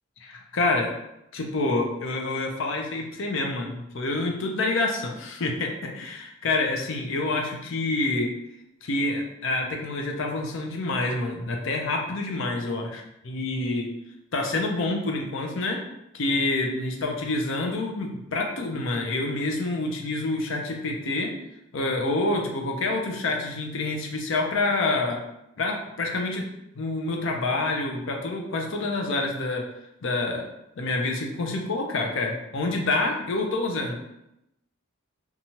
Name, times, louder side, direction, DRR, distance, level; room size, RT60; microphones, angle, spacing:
voice 1, 0.2-0.9 1.3-8.3 8.8-13.9 14.3-15.8 16.1-21.3 21.7-25.2 25.6-26.5 26.8-29.6 30.0-30.4 30.8-34.1, left 2 dB, 55° left, 1 dB, 0.4 m, -27 dB
2.9 x 2.3 x 2.7 m, 0.85 s
head